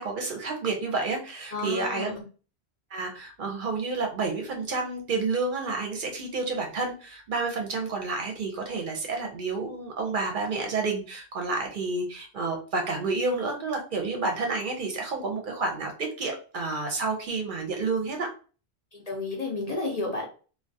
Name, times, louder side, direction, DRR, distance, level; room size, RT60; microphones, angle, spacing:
voice 1, 0.0-2.1 2.9-18.3, right 3 dB, 60° right, 2 dB, 0.6 m, -30 dB
voice 2, 1.5-2.2 18.9-20.3, left 2 dB, 50° left, -2 dB, 0.5 m, -31 dB
2.2 x 2.1 x 2.6 m, 0.37 s
omnidirectional pair, 1.1 m